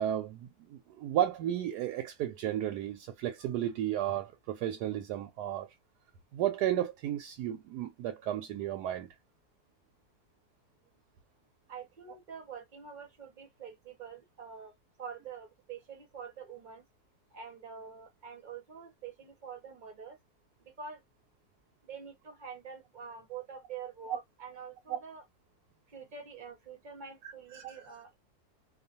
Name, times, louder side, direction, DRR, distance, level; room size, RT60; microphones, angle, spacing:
voice 1, 0.0-5.7 6.3-9.1 24.1-24.2 24.9-25.0 27.2-27.9, right 11 dB, 90° right, 1.1 m, -33 dB
voice 2, 11.7-14.7 15.0-16.8 17.3-20.2 20.8-21.0 21.8-25.2 25.9-28.1, right 6 dB, 40° right, 0.7 m, -46 dB
2.5 x 2.4 x 2.7 m
omnidirectional pair, 1.7 m